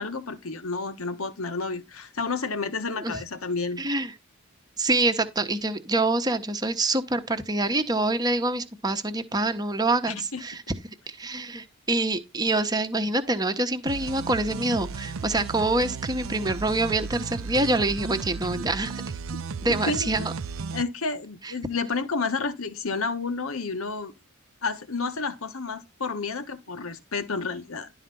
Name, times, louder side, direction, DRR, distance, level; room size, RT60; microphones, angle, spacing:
voice 1, 0.0-3.8 10.1-10.4 19.9-20.3 20.7-24.1 24.6-27.9, left 4 dB, 75° left, 1.3 m, -30 dB
voice 2, 3.8-4.1 4.8-10.6 11.1-19.0 19.6-20.3 21.4-21.5, right 2 dB, 20° right, 1.0 m, -26 dB
sound 1, 13.9-20.8, right 5 dB, 65° right, 0.5 m, -34 dB
11.5 x 4.0 x 5.4 m
head